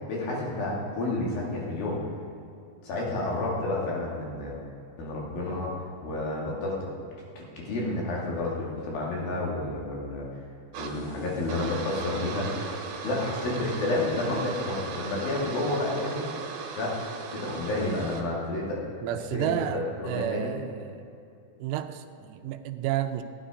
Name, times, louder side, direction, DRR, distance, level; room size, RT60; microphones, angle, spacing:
voice 1, 0.1-2.0 2.8-4.6 5.0-6.9 7.4-10.3 10.8-12.5 13.0-16.3 16.8-17.0 17.3-18.8 19.1-20.5, left 2 dB, 60° left, -3 dB, 3.9 m, -30 dB
sound 1, 10.7-18.2, right 4 dB, 65° right, 2.8 m, -37 dB
voice 2, 19.0-21.0 21.6-23.2, right 12 dB, 85° right, 9 dB, 2.7 m, -31 dB
15.5 x 10.0 x 5.0 m, 2.6 s
omnidirectional pair, 5.1 m